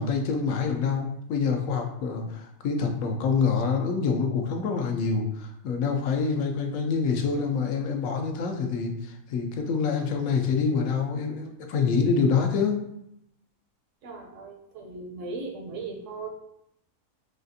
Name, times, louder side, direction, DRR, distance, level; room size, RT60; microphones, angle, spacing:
voice 1, 0.0-12.8, left 5 dB, 75° left, 3 dB, 1.0 m, -26 dB
voice 2, 14.0-16.3, right 3 dB, 70° right, 1 dB, 0.9 m, -37 dB
4.2 x 2.4 x 2.6 m, 0.77 s
omnidirectional pair, 1.5 m